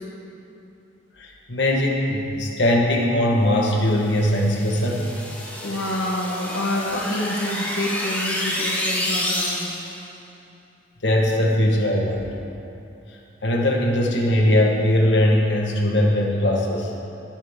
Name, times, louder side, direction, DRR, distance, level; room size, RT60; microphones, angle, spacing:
voice 1, 1.2-5.1 11.0-12.3 13.4-16.9, left 1 dB, 70° left, 0 dB, 1.4 m, -20 dB
sound 1, 4.0-10.0, left 1 dB, 10° left, 1.3 m, -29 dB
voice 2, 5.6-9.8, left 1 dB, 90° left, -2 dB, 1.2 m, -27 dB
19.0 x 7.5 x 3.6 m, 2.8 s
head